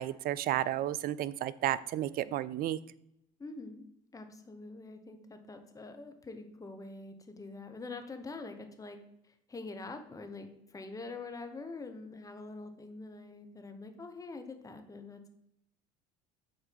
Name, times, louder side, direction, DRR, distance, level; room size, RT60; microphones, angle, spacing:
voice 1, 0.0-2.8, right 12 dB, 45° right, 18 dB, 0.4 m, -32 dB
voice 2, 3.4-3.8 4.1-9.0 9.3-15.3, left 3 dB, 15° left, 6 dB, 1.2 m, -45 dB
6.7 x 4.5 x 5.4 m, 0.79 s
hypercardioid pair, 75°, 21 cm